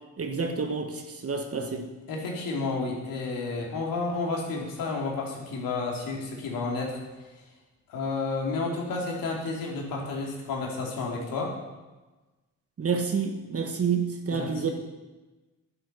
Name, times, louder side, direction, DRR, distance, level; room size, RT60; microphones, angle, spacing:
voice 1, 0.2-1.9 12.8-14.7, right 5 dB, 45° right, 5 dB, 1.4 m, -29 dB
voice 2, 2.1-7.0 7.9-11.5 14.3-14.7, left 3 dB, 85° left, -1 dB, 3.1 m, -31 dB
11.0 x 9.9 x 5.5 m, 1.2 s
cardioid pair, 70°, 33 cm